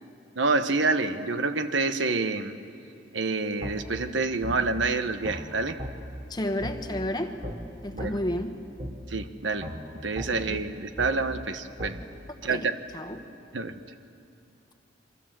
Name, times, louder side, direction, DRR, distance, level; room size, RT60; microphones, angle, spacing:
voice 1, 0.4-2.5 3.1-5.8 7.9-8.2 9.1-9.7 10.0-12.0 12.4-12.8 13.5-13.7, right 3 dB, 75° right, 9 dB, 1.2 m, -27 dB
sound 1, 3.6-3.8 4.4-4.6 5.2-5.4 5.8-5.9 6.6-6.8 7.4-7.6 8.0-8.1 8.8-8.9 9.6-9.8 10.2-10.3 11.0-11.1 11.8-11.9, equal, 35° right, 3.0 m, -35 dB
voice 2, 6.3-7.4 7.8-8.6 10.3-10.6 12.4-13.2, left 1 dB, 20° left, 7 dB, 1.3 m, -32 dB
29.5 x 24.0 x 7.7 m, 2.5 s
head